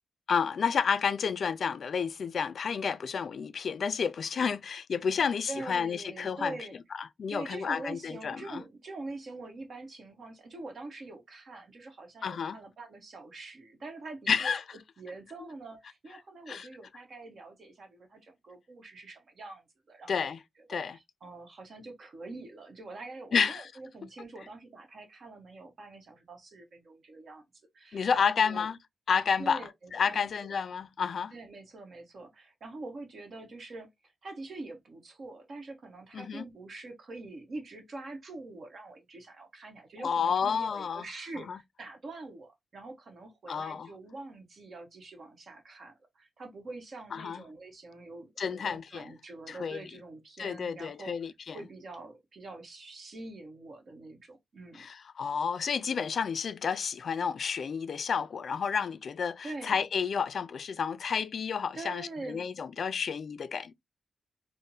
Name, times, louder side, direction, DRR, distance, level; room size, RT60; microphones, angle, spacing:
voice 1, 0.3-6.6 7.0-8.6 12.2-12.6 14.3-14.6 16.5-16.7 20.1-20.4 20.7-20.9 23.3-23.7 27.9-28.8 29.1-29.6 29.9-31.3 36.1-36.4 40.0-41.1 41.5-41.6 43.5-43.9 47.1-47.4 48.4-49.1 49.5-49.9 50.4-51.6 54.7-63.7, left 6 dB, 70° left, 0.3 m, -30 dB
voice 2, 5.5-6.8 7.3-14.5 15.0-20.3 20.7-27.4 27.7-28.7 29.4-30.5 31.3-51.1 51.5-54.8 59.4-59.8 61.7-62.4, right 2 dB, 65° right, 1.1 m, -45 dB
3.5 x 2.1 x 2.6 m
cardioid pair, 65°, 0 cm